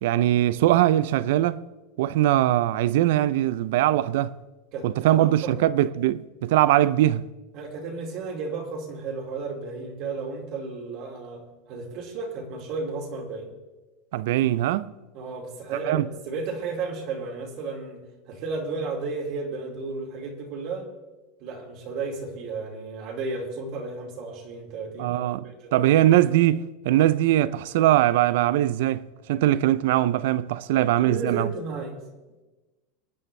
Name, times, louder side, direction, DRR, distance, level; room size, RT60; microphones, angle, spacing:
voice 1, 0.0-1.6 2.0-4.3 4.8-7.2 14.1-14.9 15.9-16.1 25.0-25.4 25.7-31.5, right 13 dB, 70° right, 0.5 m, -21 dB
voice 2, 4.7-5.6 7.5-13.5 15.1-20.9 21.4-25.2 25.4-25.8 30.7-32.0, right 4 dB, 45° right, 2.6 m, -33 dB
24.5 x 9.5 x 3.3 m
supercardioid pair, 155°, 0 cm